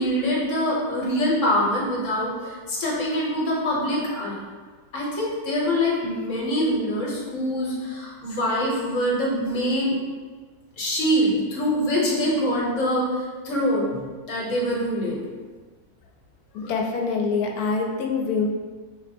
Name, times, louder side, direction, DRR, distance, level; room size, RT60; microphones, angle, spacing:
voice 1, 0.0-4.3 4.9-10.0 10.8-15.2 16.6-16.7, equal, 55° left, -4 dB, 1.2 m, -24 dB
voice 2, 16.5-18.5, left 4 dB, 75° left, 1 dB, 1.1 m, -25 dB
4.7 x 2.0 x 4.2 m, 1.4 s
omnidirectional pair, 1.7 m